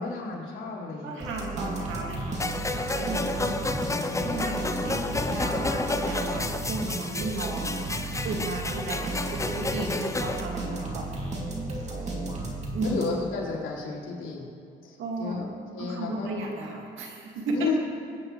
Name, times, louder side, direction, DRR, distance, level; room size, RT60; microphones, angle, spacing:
voice 1, 0.0-1.3 3.4-4.5 8.3-8.5 12.1-12.3 12.8-14.5 14.8-15.5 15.7-16.3 17.5-17.8, left 4 dB, 75° left, -6 dB, 3.7 m, -33 dB
voice 2, 1.0-3.6 4.2-7.8 8.2-11.1 12.7-13.0 15.0-15.5 15.8-17.7, right 2 dB, 80° right, 0 dB, 2.1 m, -34 dB
sound 1, 1.2-13.4, right 2 dB, 35° right, 2.6 m, -34 dB
sound 2, 2.4-10.4, left 2 dB, 15° left, 0.6 m, -31 dB
22.5 x 9.4 x 3.2 m, 2.3 s
cardioid pair, 90°, 20 cm